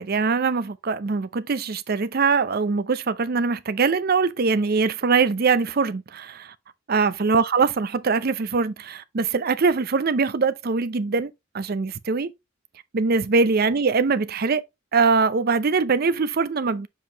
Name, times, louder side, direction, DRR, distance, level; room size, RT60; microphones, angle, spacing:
voice 1, 0.0-6.5 6.9-12.3 12.9-14.6 14.9-16.9, right 4 dB, 50° right, 0.5 m, -22 dB
7.3 x 4.5 x 2.8 m
head